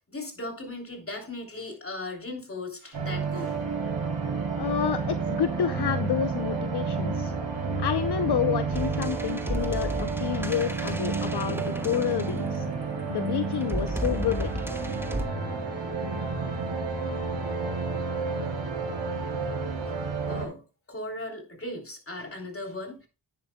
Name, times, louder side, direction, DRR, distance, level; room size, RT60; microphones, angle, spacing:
voice 1, 0.1-3.6 19.9-20.0 20.3-23.1, left 2 dB, 30° left, 2 dB, 3.2 m, -37 dB
sound 1, 2.9-20.5, right 4 dB, 85° right, 3.2 m, -30 dB
voice 2, 4.6-7.3 7.8-12.7 13.1-14.5, left 10 dB, 65° left, 11 dB, 0.7 m, -29 dB
sound 2, 8.7-12.8 13.6-15.3, right 1 dB, 5° right, 1.2 m, -34 dB
10.5 x 9.8 x 2.2 m, 0.32 s
cardioid pair, 65°, 43 cm